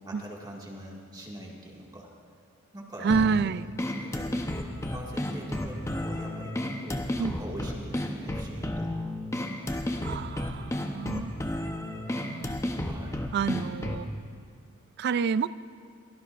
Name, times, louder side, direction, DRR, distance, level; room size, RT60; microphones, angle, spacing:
voice 1, 0.0-2.1 2.7-3.1 3.4-3.6 4.0-4.4 4.9-8.9 12.8-13.3, right 1 dB, 20° right, -2 dB, 2.0 m, -43 dB
voice 2, 3.0-3.7 7.2-7.4 10.0-11.3 12.1-12.6 13.3-14.1 15.0-15.5, right 5 dB, 55° right, 16 dB, 0.3 m, -28 dB
sound 1, 3.1-14.1, left 1 dB, 15° left, 0.8 m, -32 dB
22.5 x 17.0 x 2.5 m, 2.4 s
head